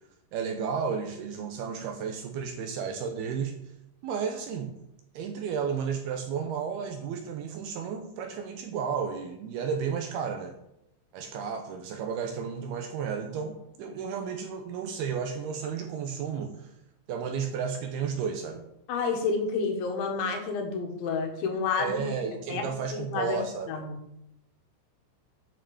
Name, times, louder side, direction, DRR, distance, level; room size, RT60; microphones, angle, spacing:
voice 1, 0.3-3.6 4.0-4.7 5.1-10.5 11.1-16.7 17.1-18.6 21.8-23.8, right 6 dB, 75° right, 5 dB, 2.5 m, -33 dB
voice 2, 18.9-22.1 22.5-24.0, left 4 dB, 80° left, 3 dB, 3.9 m, -30 dB
9.1 x 6.0 x 7.0 m, 0.82 s
omnidirectional pair, 5.3 m